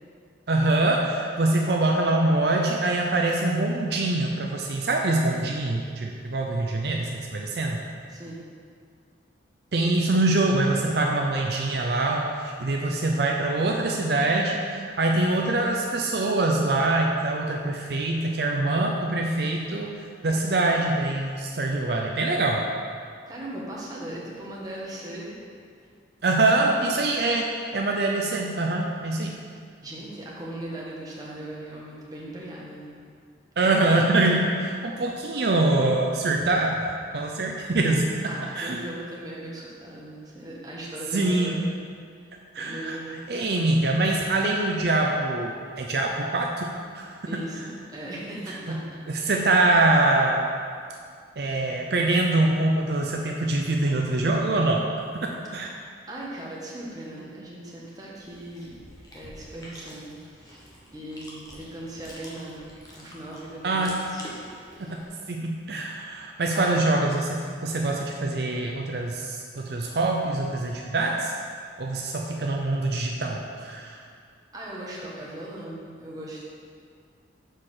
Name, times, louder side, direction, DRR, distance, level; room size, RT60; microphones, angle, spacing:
voice 1, 0.5-7.8 9.7-19.9 20.2-22.6 26.2-29.4 33.6-38.1 38.6-38.8 41.1-41.6 42.5-43.0 43.3-46.7 46.9-47.2 48.7-48.8 49.1-50.4 51.4-54.8 55.5-55.7 63.6-64.0 65.3-71.3 71.8-74.0, right 2 dB, 60° right, 0 dB, 0.5 m, -24 dB
voice 2, 8.1-8.4 23.3-25.3 26.4-27.0 29.8-32.9 33.6-34.0 38.3-41.8 42.2-42.3 42.6-43.2 47.2-49.4 56.1-58.8 59.1-62.7 62.9-64.3 64.7-64.9 66.5-66.8 74.5-76.4, right 1 dB, 20° right, -4 dB, 1.2 m, -39 dB
Chewing mastication, 58.1-65.1, equal, 20° left, 1.1 m, -46 dB
6.4 x 4.9 x 5.8 m, 2.1 s
head